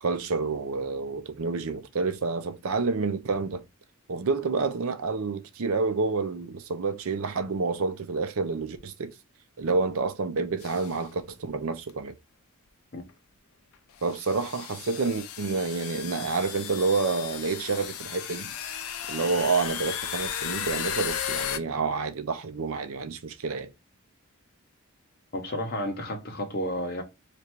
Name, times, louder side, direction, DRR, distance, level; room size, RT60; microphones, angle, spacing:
voice 1, 0.0-3.6 4.1-9.1 9.6-12.1 14.0-18.5 19.1-23.7, right 4 dB, 75° right, 0.6 m, -28 dB
sound 1, 10.6-11.0 11.9-12.0 13.1-13.2 14.0-21.6, left 9 dB, 80° left, 0.5 m, -35 dB
voice 2, 25.3-27.0, equal, 45° left, 0.8 m, -31 dB
3.2 x 2.5 x 4.4 m
head